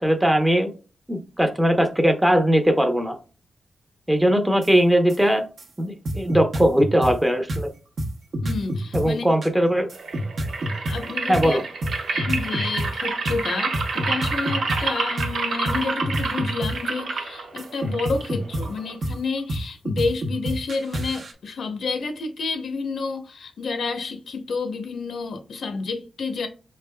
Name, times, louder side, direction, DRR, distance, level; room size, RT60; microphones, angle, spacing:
voice 1, 0.0-0.7 1.1-3.2 4.1-5.4 5.8-7.7 8.9-9.9 11.3-11.6, equal, 10° right, 0.6 m, -20 dB
sound 1, 4.6-4.7 5.1-5.2 5.6-5.7 6.0-7.1 7.5-7.6 8.0-8.1 8.3-9.0 9.4-11.9 12.2-12.9 13.2-13.4 13.7-14.8 15.2-15.3 15.6-15.8 16.0-16.7 17.1-19.6 19.8-21.3, right 1 dB, 60° right, 0.8 m, -27 dB
voice 2, 8.4-9.2 10.9-11.6 12.1-26.5, left 4 dB, 70° left, 0.7 m, -29 dB
sound 2, 9.9-19.0, right 3 dB, 75° right, 1.2 m, -29 dB
5.6 x 3.3 x 2.2 m
wide cardioid pair, 135°, 0 cm